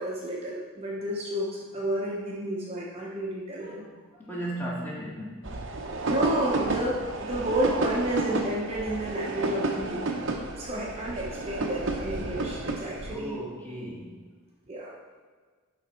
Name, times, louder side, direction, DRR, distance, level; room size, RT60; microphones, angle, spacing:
voice 1, 0.0-3.8 6.1-10.0 10.6-13.4 14.7-15.0, right 1 dB, 30° right, -4 dB, 0.9 m, -31 dB
voice 2, 3.5-6.2 13.0-14.2, right 1 dB, 10° left, -6 dB, 1.7 m, -39 dB
sound 1, 5.4-13.1, right 3 dB, 60° right, 0.8 m, -31 dB
11.5 x 4.2 x 4.4 m, 1.5 s
head